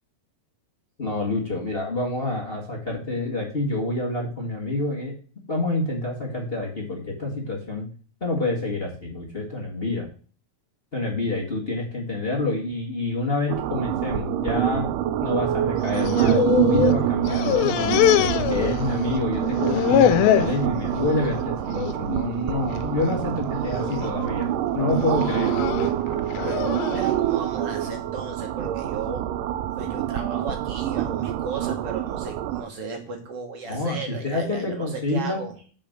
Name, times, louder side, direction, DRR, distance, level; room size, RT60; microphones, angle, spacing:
voice 1, 1.0-5.1 5.5-7.9 8.2-10.1 10.9-14.8 15.2-24.5 24.7-25.9 33.6-35.4, left 2 dB, 30° left, -1 dB, 1.0 m, -27 dB
sound 1, 13.5-32.6, right 11 dB, 80° right, 2.1 m, -26 dB
sound 2, 15.9-17.0 17.3-19.1 19.4-20.6 21.1-21.4 21.8-21.9 22.8-23.2 23.7-24.1 24.9-27.1, left 11 dB, 90° left, 2.5 m, -23 dB
voice 2, 26.4-29.3 29.8-35.5, right 5 dB, 60° right, 3 dB, 1.6 m, -35 dB
7.1 x 5.4 x 6.6 m, 0.40 s
omnidirectional pair, 4.1 m